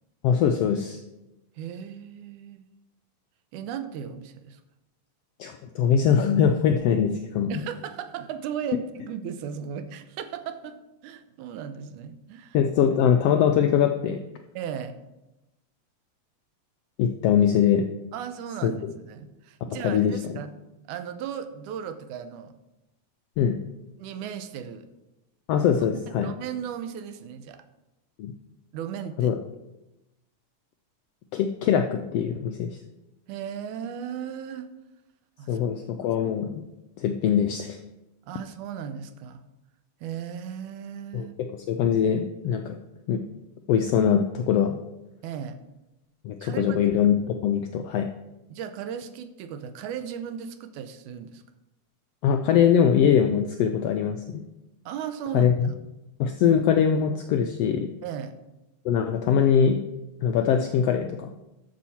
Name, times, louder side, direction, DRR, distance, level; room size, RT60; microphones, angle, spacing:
voice 1, 0.2-1.0 5.4-7.5 12.5-14.2 17.0-17.9 18.6-18.7 19.8-20.1 23.4-23.6 25.5-26.3 28.2-28.3 29.2-29.3 31.3-32.7 35.5-36.6 37.0-37.8 41.1-41.3 41.7-42.8 43.1-43.2 43.7-44.7 46.2-48.1 52.2-54.4 55.3-55.7 56.2-57.9 58.8-59.8 60.2-61.3, left 8 dB, 85° left, 6 dB, 1.4 m, -22 dB
voice 2, 1.6-2.7 3.5-4.6 7.5-12.6 14.6-15.0 18.1-20.5 20.9-22.5 24.0-24.9 26.2-27.7 28.7-29.4 33.3-34.7 35.4-35.6 38.3-39.4 40.0-41.4 45.2-45.6 46.4-46.8 48.5-51.4 54.9-55.6 58.0-58.4, right 8 dB, 85° right, 10 dB, 2.2 m, -36 dB
12.5 x 6.4 x 4.3 m, 0.94 s
omnidirectional pair, 3.4 m